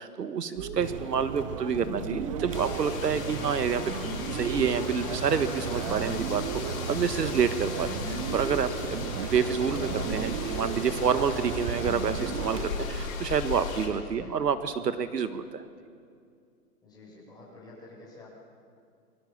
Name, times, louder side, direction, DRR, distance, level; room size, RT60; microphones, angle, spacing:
voice 1, 0.0-3.8 4.1-15.6, right 6 dB, 80° right, 11 dB, 1.7 m, -28 dB
sound 1, 0.6-13.0, right 3 dB, 35° right, 3.5 m, -38 dB
sound 2, 0.8-12.7, right 9 dB, 20° right, 0.7 m, -37 dB
voice 2, 0.9-1.4 14.2-14.4 16.8-18.3, left 2 dB, 10° left, -6 dB, 7.9 m, -50 dB
sound 3, 2.5-13.9, left 5 dB, 55° left, 5.8 m, -37 dB
29.0 x 24.0 x 7.4 m, 2.3 s
hypercardioid pair, 145°, 48 cm